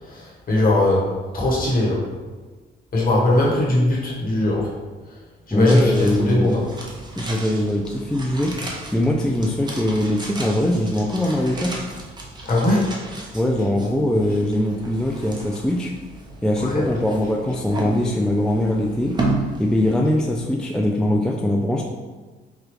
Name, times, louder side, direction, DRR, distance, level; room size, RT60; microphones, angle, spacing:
voice 1, 0.0-2.0 2.9-4.7 5.5-6.6 12.5-12.9 16.6-16.8, left 1 dB, 45° left, -4 dB, 1.4 m, -20 dB
voice 2, 5.5-6.5 7.2-11.7 13.3-15.9 16.4-19.1 19.6-21.8, left 1 dB, 5° left, 0 dB, 0.3 m, -22 dB
sound 1, 5.7-20.8 21.1-21.2, right 2 dB, 20° right, 0.7 m, -33 dB
4.9 x 2.3 x 3.1 m, 1.3 s
cardioid pair, 90°, 20 cm